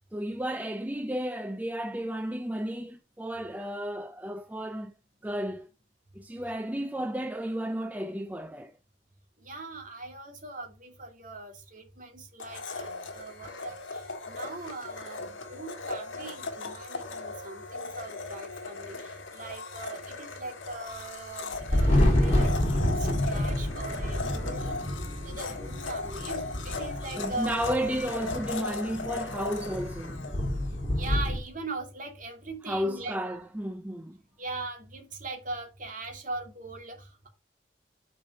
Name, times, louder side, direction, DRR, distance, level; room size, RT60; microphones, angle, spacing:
voice 1, 0.1-4.9 5.2-5.7 6.1-8.7 27.1-30.2 32.6-34.2, equal, 10° right, 0.4 m, -33 dB
voice 2, 9.4-15.2 15.5-24.7 25.2-27.7 31.0-33.1 34.4-37.3, right 2 dB, 40° right, 2.4 m, -40 dB
Domestic sounds home sounds, 12.4-31.2, left 3 dB, 85° left, 1.7 m, -38 dB
Thunder, 21.5-31.4, left 1 dB, 30° left, 3.0 m, -28 dB
6.4 x 5.3 x 5.4 m
head